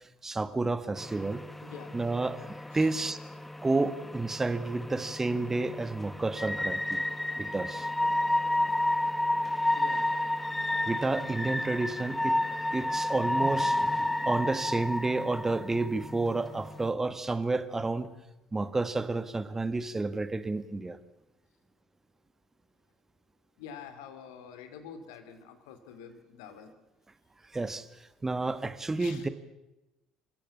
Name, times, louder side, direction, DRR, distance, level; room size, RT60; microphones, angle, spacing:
voice 1, 0.2-1.4 1.9-2.4 2.7-3.2 3.6-7.0 7.4-7.9 10.8-12.4 12.7-18.1 18.5-21.0 27.5-27.9 28.2-29.3, right 3 dB, 15° right, 12 dB, 1.6 m, -30 dB
sound 1, 1.0-16.9, left 1 dB, 10° left, 1.0 m, -31 dB
voice 2, 1.6-2.0 2.7-2.9 9.7-10.1 23.6-26.7 29.0-29.3, left 7 dB, 65° left, 10 dB, 2.9 m, -47 dB
29.0 x 16.0 x 8.5 m, 0.97 s
figure-of-eight pair, 55°, 2 cm